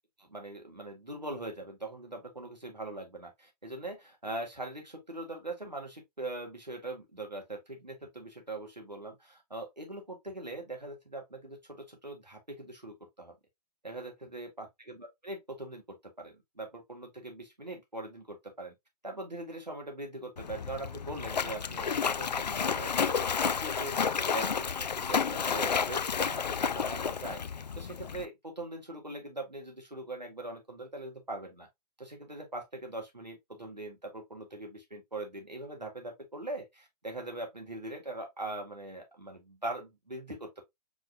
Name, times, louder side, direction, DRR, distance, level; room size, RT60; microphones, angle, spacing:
voice 1, 0.2-13.3 13.8-18.7 19.0-31.7 32.0-40.6, right 2 dB, 90° right, 2.1 m, -41 dB
Splash splatter, 20.4-28.2, left 6 dB, 80° left, 0.5 m, -31 dB
4.8 x 4.3 x 2.5 m
figure-of-eight pair, 120°, 21 cm